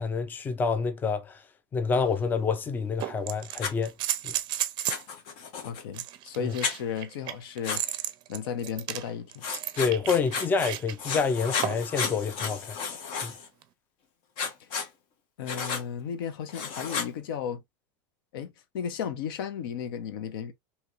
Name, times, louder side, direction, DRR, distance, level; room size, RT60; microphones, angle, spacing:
voice 1, 0.0-1.4 1.7-3.9 4.2-4.3 6.4-6.5 9.7-12.8 13.2-13.3, left 5 dB, 15° left, 0.4 m, -27 dB
sound 1, 1.9-2.0 3.0-5.1 5.9-11.0 11.6-12.0 13.6-13.7, right 13 dB, 40° right, 0.5 m, -34 dB
Writing, 3.6-3.7 4.9-5.8 6.6-6.8 7.6-7.8 9.4-10.7 11.0-13.5 14.4-14.9 15.5-15.8 16.5-17.1, left 5 dB, 50° left, 1.0 m, -33 dB
voice 2, 5.6-8.0 8.3-9.4 14.6-14.7 15.4-17.6 18.3-20.5, left 8 dB, 75° left, 0.7 m, -34 dB
2.9 x 2.8 x 2.5 m
supercardioid pair, 125°, 12 cm